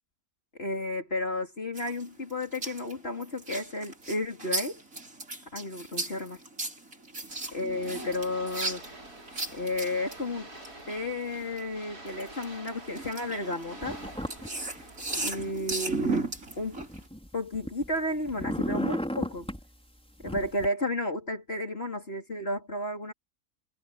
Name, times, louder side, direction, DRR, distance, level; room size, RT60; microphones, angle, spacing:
voice 1, 0.5-4.8 5.5-6.4 7.5-8.8 9.5-10.5 10.9-14.0 15.2-16.3 16.6-16.8 17.3-19.5 20.2-23.1, left 1 dB, 40° left, 4.0 m, -32 dB
sound 1, 1.8-11.6 12.1-17.1, right 2 dB, 60° right, 5.8 m, -36 dB
sound 2, 7.3-15.5, right 1 dB, 85° right, 7.3 m, -48 dB
sound 3, 13.8-14.5 14.8-15.7 16.3-18.0 18.2-19.6 20.2-20.7, equal, 5° left, 4.6 m, -34 dB
omnidirectional pair, 1.6 m